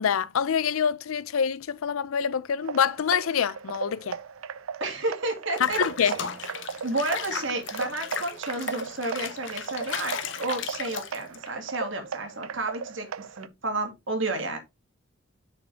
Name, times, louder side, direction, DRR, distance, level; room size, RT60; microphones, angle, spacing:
voice 1, 0.0-4.2 5.6-6.2, left 7 dB, 85° left, 0.5 m, -26 dB
sound 1, 2.6-13.5, right 6 dB, 85° right, 0.5 m, -37 dB
voice 2, 4.8-6.1 6.8-14.6, right 2 dB, 65° right, 2.3 m, -31 dB
Water / Bathtub (filling or washing), 5.6-11.5, left 7 dB, 65° left, 0.9 m, -35 dB
6.9 x 6.3 x 3.4 m
head